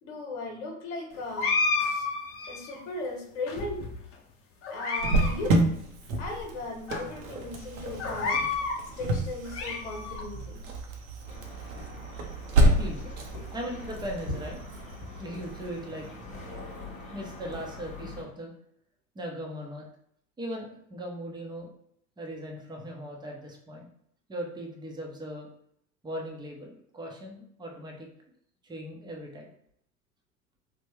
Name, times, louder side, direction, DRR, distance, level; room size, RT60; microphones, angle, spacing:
voice 1, 0.0-1.5 1.8-2.0 2.5-3.8 4.7-5.6 6.2-8.4 9.0-10.6, left 2 dB, 70° left, 1 dB, 1.1 m, -37 dB
sound 1, 1.4-2.8 3.5-4.1 4.6-5.3 5.6-5.7 6.4-6.5 6.9-7.0 8.0-8.8 9.3-10.2, left 4 dB, 30° left, 0.8 m, -30 dB
Cricket, 5.0-16.4, right 1 dB, 70° right, 0.8 m, -29 dB
sound 2, 11.2-18.2, left 2 dB, 15° left, 1.2 m, -44 dB
voice 2, 12.8-13.1 13.5-14.6 15.2-16.1 17.1-18.5 19.1-19.8 20.4-21.7 22.2-23.9 24.3-25.5 26.0-28.1 28.6-29.5, equal, 10° right, 0 dB, 0.7 m, -38 dB
3.4 x 2.1 x 3.1 m, 0.70 s
hypercardioid pair, 90°, 42 cm